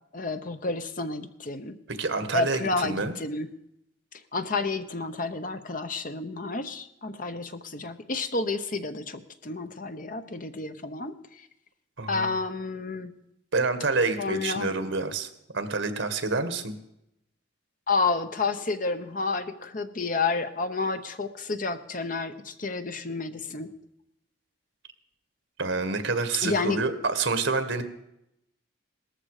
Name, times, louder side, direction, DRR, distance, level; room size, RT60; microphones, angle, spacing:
voice 1, 0.1-1.8 2.3-3.5 4.3-11.2 12.1-13.1 14.2-14.7 17.9-23.7 26.4-26.8, left 3 dB, 40° left, 9 dB, 0.9 m, -30 dB
voice 2, 1.9-3.1 12.0-12.3 13.5-16.7 25.6-27.8, right 3 dB, 75° right, 9 dB, 1.7 m, -28 dB
18.0 x 14.0 x 5.0 m, 0.81 s
head